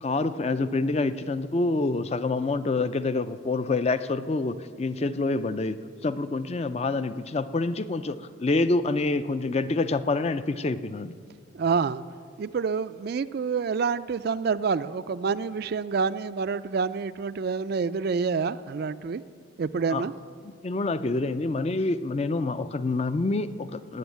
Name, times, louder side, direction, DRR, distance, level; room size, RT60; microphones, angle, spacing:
voice 1, 0.0-5.8 6.0-11.1 19.9-20.0 20.6-24.0, left 3 dB, 30° left, 12 dB, 0.4 m, -27 dB
voice 2, 11.5-12.0 12.4-19.2 19.6-20.1, right 5 dB, 50° right, 14 dB, 0.3 m, -27 dB
18.5 x 6.3 x 9.2 m, 2.1 s
head